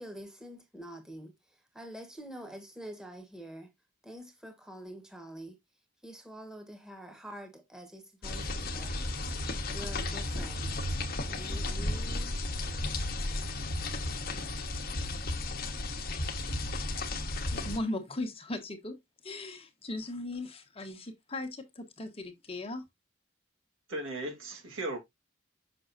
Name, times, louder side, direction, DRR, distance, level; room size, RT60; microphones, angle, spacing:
voice 1, 0.0-1.3 1.7-3.7 4.0-5.6 6.0-9.1 9.7-10.7 11.3-12.4, right 1 dB, 5° right, 1.2 m, -46 dB
sound 1, 8.2-17.8, left 2 dB, 50° left, 1.1 m, -34 dB
voice 2, 17.5-19.0 19.2-22.8, left 2 dB, 30° left, 1.1 m, -38 dB
voice 3, 23.9-25.0, right 1 dB, 80° right, 2.4 m, -36 dB
6.1 x 6.1 x 2.5 m
head